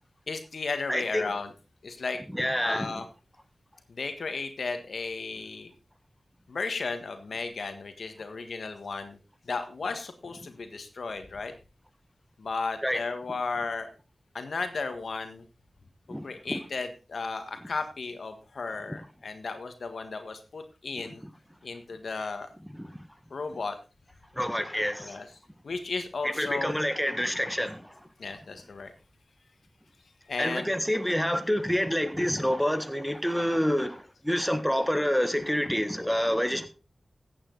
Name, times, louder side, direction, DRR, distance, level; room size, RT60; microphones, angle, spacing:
voice 1, 0.3-1.5 1.8-2.2 2.6-3.1 3.9-5.7 6.5-9.2 9.4-11.5 12.4-13.9 14.3-15.4 16.2-21.2 21.6-22.5 23.3-23.8 25.0-25.3 25.6-26.7 28.2-28.9 30.3-30.7, left 4 dB, 85° left, 1.6 m, -34 dB
voice 2, 0.9-1.2 2.3-2.9 12.8-13.0 16.1-16.2 16.5-16.6 24.3-25.2 26.2-27.9 30.4-36.7, equal, ahead, 1.5 m, -27 dB
14.5 x 8.7 x 4.0 m
cardioid pair, 55°, 0 cm